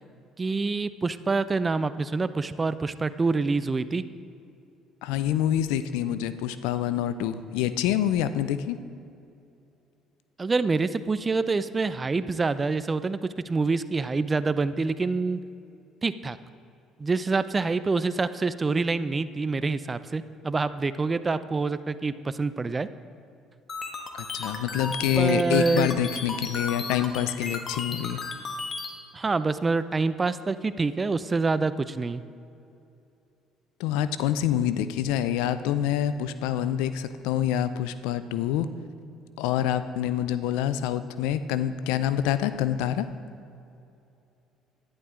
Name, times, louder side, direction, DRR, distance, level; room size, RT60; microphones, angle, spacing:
voice 1, 0.4-4.0 10.4-15.4 16.0-16.4 17.0-22.9 25.2-25.9 29.1-32.2, right 3 dB, 30° right, 14 dB, 0.5 m, -26 dB
voice 2, 5.0-8.8 24.1-28.2 33.8-38.7 39.4-43.1, left 10 dB, 80° left, 13 dB, 0.4 m, -26 dB
sound 1, 23.7-28.9, left 4 dB, 40° left, 1.3 m, -34 dB
11.0 x 10.5 x 3.7 m, 2.7 s
hypercardioid pair, 65°, 0 cm